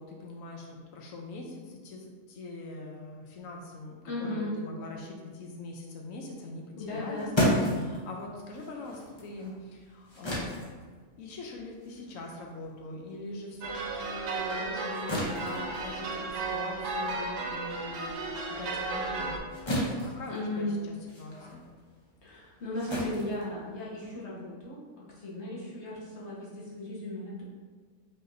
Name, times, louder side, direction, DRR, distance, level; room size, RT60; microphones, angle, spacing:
voice 1, 0.0-10.5 11.2-18.2 18.5-19.3 19.7-19.8 20.0-21.6, left 2 dB, 90° left, 0 dB, 1.1 m, -42 dB
voice 2, 4.1-4.6 6.8-7.3 20.3-20.7 22.2-27.4, left 2 dB, 60° left, -6 dB, 1.5 m, -36 dB
sound 1, 6.8-13.6 14.0-24.2, equal, 25° left, 0.8 m, -35 dB
sound 2, 13.6-19.4, right 3 dB, 90° right, 1.1 m, -34 dB
5.7 x 3.6 x 2.6 m, 1.5 s
omnidirectional pair, 1.3 m